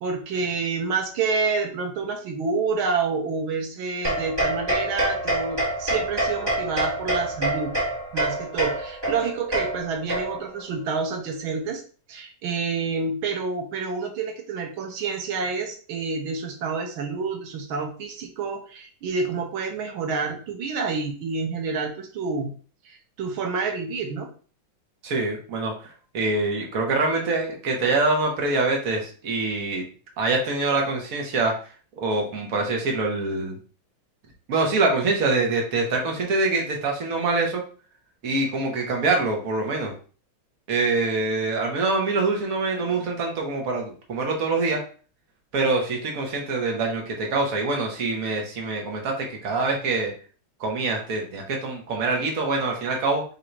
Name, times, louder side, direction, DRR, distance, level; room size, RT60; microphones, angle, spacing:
voice 1, 0.0-7.7 8.1-11.8 12.1-22.5 22.9-24.3, right 4 dB, 80° right, 3 dB, 1.7 m, -28 dB
sound 1, 4.0-10.6, right 1 dB, 25° right, 0.6 m, -27 dB
voice 2, 25.0-25.7 26.1-29.8 30.2-31.5 32.0-33.6 34.5-37.6 38.2-39.9 40.7-44.8 45.5-50.1 50.6-53.2, right 3 dB, 50° right, 1 dB, 1.4 m, -25 dB
4.0 x 2.7 x 4.5 m, 0.40 s
omnidirectional pair, 2.2 m